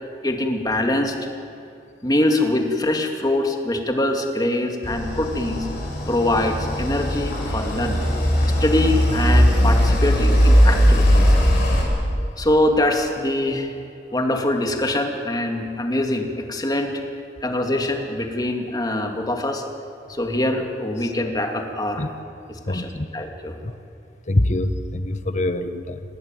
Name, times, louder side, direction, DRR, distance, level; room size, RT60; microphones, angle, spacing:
voice 1, 0.2-1.1 2.0-5.7 6.1-8.1 8.6-11.4 12.4-13.7 14.1-16.9 17.4-19.6 20.1-22.1 22.5-23.5, left 1 dB, 20° left, 3 dB, 2.5 m, -23 dB
sound 1, 4.8-11.8, equal, 60° left, 7.6 m, -18 dB
voice 2, 22.7-23.1 23.6-23.7 24.3-26.0, left 1 dB, 40° left, 9 dB, 1.4 m, -24 dB
27.0 x 19.5 x 9.1 m, 2.5 s
head